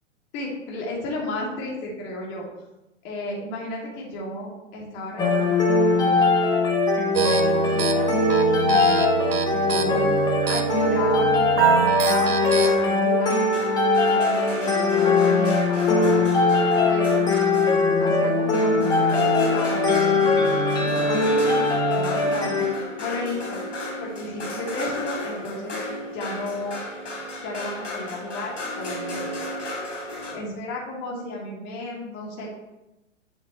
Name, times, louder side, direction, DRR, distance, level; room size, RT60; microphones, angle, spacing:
voice 1, 0.3-2.4 3.0-6.2 7.1-8.2 8.4-9.3 9.7-10.1 10.5-13.4 14.1-16.3 16.8-17.2 18.0-20.3 20.8-23.6 24.0-25.8 26.1-26.8 27.4-29.3 30.3-32.6, left 1 dB, 30° left, -3 dB, 2.7 m, -33 dB
sound 1, 5.2-22.7, left 3 dB, 10° left, 1.0 m, -21 dB
sound 2, 7.1-12.7, right 6 dB, 45° right, 0.9 m, -24 dB
sound 3, 12.6-18.0 18.5-30.3, left 1 dB, 65° left, 3.4 m, -34 dB
10.0 x 7.9 x 3.2 m, 0.98 s
figure-of-eight pair, 115°, 39 cm